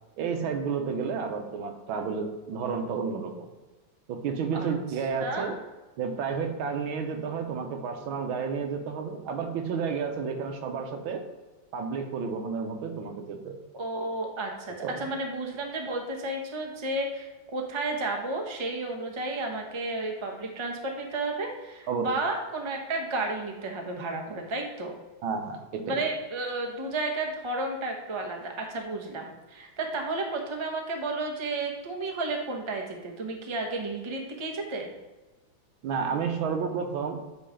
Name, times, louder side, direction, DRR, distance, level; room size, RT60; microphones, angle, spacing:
voice 1, 0.2-3.5 4.1-5.6 6.0-11.3 11.7-13.6 14.8-15.0 21.9-22.1 25.2-26.0 35.8-37.2, right 5 dB, 85° right, 5 dB, 1.6 m, -31 dB
voice 2, 5.2-5.5 13.7-24.9 25.8-34.9, right 2 dB, 40° right, 1 dB, 0.4 m, -32 dB
8.7 x 3.1 x 5.1 m, 1.2 s
omnidirectional pair, 2.2 m